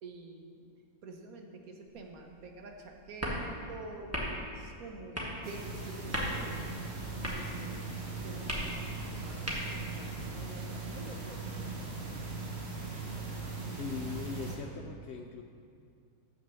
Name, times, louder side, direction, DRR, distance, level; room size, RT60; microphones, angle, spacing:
voice 1, 0.0-6.8 7.2-7.9 8.2-11.9, right 3 dB, 80° right, 3 dB, 1.3 m, -48 dB
sound 1, 1.9-10.0, equal, 10° right, 1.2 m, -40 dB
sound 2, 5.4-14.6, right 3 dB, 50° right, 1.4 m, -39 dB
voice 2, 13.7-15.4, left 6 dB, 65° left, 3 dB, 0.7 m, -40 dB
6.8 x 6.3 x 6.6 m, 2.3 s
omnidirectional pair, 1.5 m